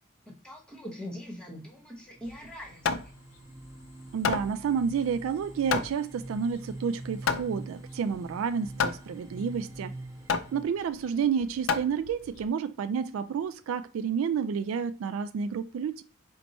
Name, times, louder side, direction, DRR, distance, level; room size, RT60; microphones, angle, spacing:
voice 1, 0.3-2.9, left 1 dB, 5° left, 1.1 m, -42 dB
sound 1, 2.2-10.6, right 2 dB, 15° right, 0.5 m, -45 dB
Hammer, 2.3-12.5, left 5 dB, 70° left, 0.4 m, -33 dB
voice 2, 4.1-9.9 10.5-16.0, right 6 dB, 75° right, 0.3 m, -30 dB
4.5 x 2.1 x 4.1 m
head